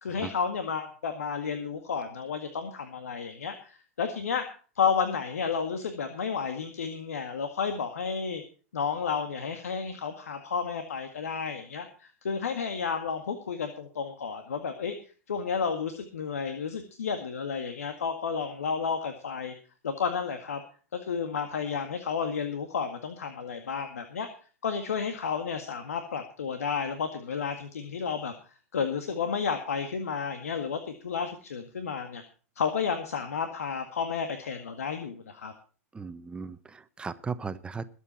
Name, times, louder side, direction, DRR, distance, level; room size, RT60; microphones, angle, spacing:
voice 1, 0.0-4.5 4.8-8.4 8.7-14.9 15.3-19.5 19.8-20.6 21.1-24.3 24.6-28.3 28.7-32.2 32.6-35.5, left 6 dB, 75° left, 7 dB, 1.9 m, -31 dB
voice 2, 35.9-37.9, right 5 dB, 10° right, 13 dB, 1.1 m, -36 dB
21.5 x 8.3 x 4.3 m, 0.39 s
hypercardioid pair, 105°, 8 cm